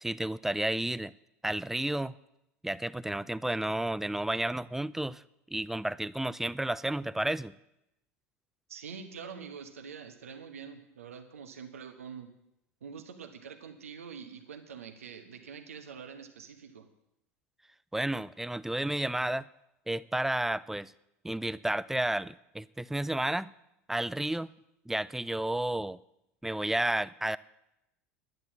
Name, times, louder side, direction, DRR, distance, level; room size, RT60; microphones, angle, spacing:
voice 1, 0.0-1.1 1.4-2.1 2.6-5.2 5.5-7.5 17.9-19.5 19.9-20.9 21.2-23.5 23.9-24.5 24.9-26.0 26.4-27.4, right 1 dB, 5° right, 19 dB, 0.4 m, -31 dB
voice 2, 8.7-12.3 12.8-16.9, right 6 dB, 75° right, 7 dB, 1.3 m, -45 dB
10.5 x 10.5 x 7.2 m, 0.85 s
figure-of-eight pair, 75°, 8 cm